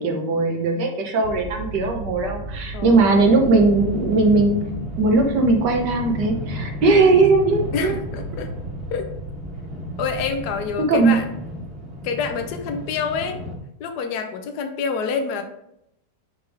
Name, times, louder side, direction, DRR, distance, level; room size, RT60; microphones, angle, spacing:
voice 1, 0.0-4.6 5.0-8.0 10.9-11.2, right 3 dB, 90° right, 3 dB, 1.7 m, -18 dB
sound 1, 1.2-11.3, right 2 dB, 55° right, 0.9 m, -36 dB
sound 2, 3.3-13.6, equal, 35° right, 1.6 m, -34 dB
voice 2, 7.7-8.5 8.9-9.1 10.0-11.3 12.0-13.4 13.8-15.4, left 5 dB, 75° left, 6 dB, 1.3 m, -27 dB
9.1 x 3.5 x 3.4 m, 0.78 s
omnidirectional pair, 1.8 m